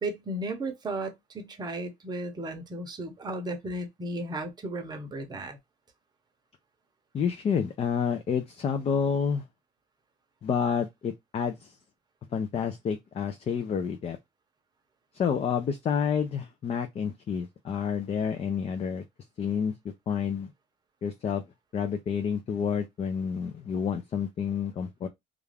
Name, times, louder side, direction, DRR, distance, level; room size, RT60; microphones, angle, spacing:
voice 1, 0.0-5.6, right 1 dB, 25° right, 0.8 m, -35 dB
voice 2, 7.1-9.4 10.4-11.7 12.3-14.2 15.1-19.0 19.4-19.7 20.1-20.5 21.0-21.4 21.7-25.1, left 7 dB, 35° left, 0.4 m, -29 dB
2.4 x 2.3 x 3.3 m
cardioid pair, 110°, 17 cm